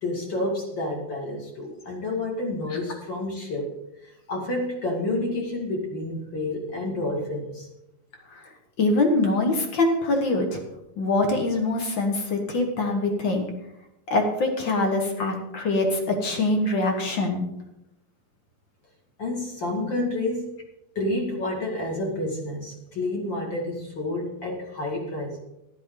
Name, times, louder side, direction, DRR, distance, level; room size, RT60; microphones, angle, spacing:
voice 1, 0.0-7.7 19.2-20.6 21.0-25.4, left 2 dB, 35° left, 0 dB, 2.4 m, -29 dB
voice 2, 8.8-10.6 11.0-13.5 14.1-17.4, left 2 dB, 55° left, 4 dB, 1.3 m, -24 dB
14.0 x 11.5 x 3.9 m, 0.88 s
omnidirectional pair, 4.4 m